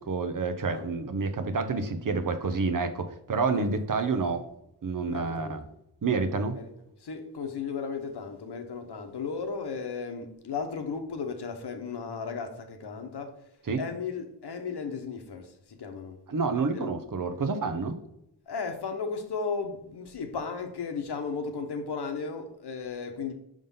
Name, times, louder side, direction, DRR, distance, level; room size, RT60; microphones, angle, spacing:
voice 1, 0.0-4.5 4.8-5.6 6.0-6.6 13.7-13.8 16.3-18.0, right 4 dB, 50° right, 0.8 m, -28 dB
voice 2, 5.1-5.6 6.5-6.7 7.0-13.3 13.8-15.5 15.8-16.2 16.7-16.9 18.5-23.3, left 5 dB, 65° left, 1.1 m, -35 dB
5.4 x 3.7 x 5.5 m
cardioid pair, 60°, 43 cm